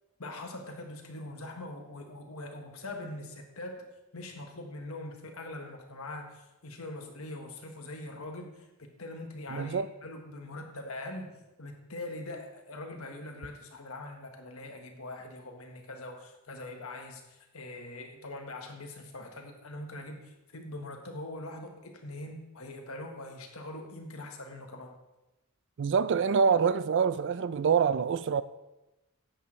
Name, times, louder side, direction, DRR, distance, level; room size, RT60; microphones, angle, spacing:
voice 1, 0.2-24.9, left 2 dB, 75° left, 1.3 m, -42 dB
voice 2, 9.5-9.9 25.8-28.4, right 6 dB, 55° right, 0.4 m, -26 dB
10.0 x 8.2 x 3.2 m
head